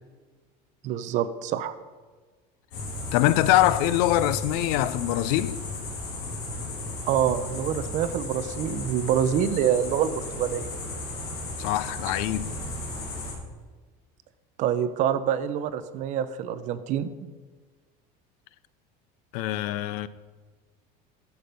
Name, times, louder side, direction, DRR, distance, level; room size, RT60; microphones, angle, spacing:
voice 1, 0.8-1.8 7.1-10.7 14.6-17.3, right 9 dB, 40° right, 0.6 m, -26 dB
sound 1, 2.7-13.3, left 2 dB, 60° left, 3.5 m, -35 dB
voice 2, 3.1-5.6 11.6-12.5 19.3-20.1, left 14 dB, 80° left, 0.6 m, -23 dB
12.0 x 6.9 x 5.3 m
cardioid pair, 175°, 19 cm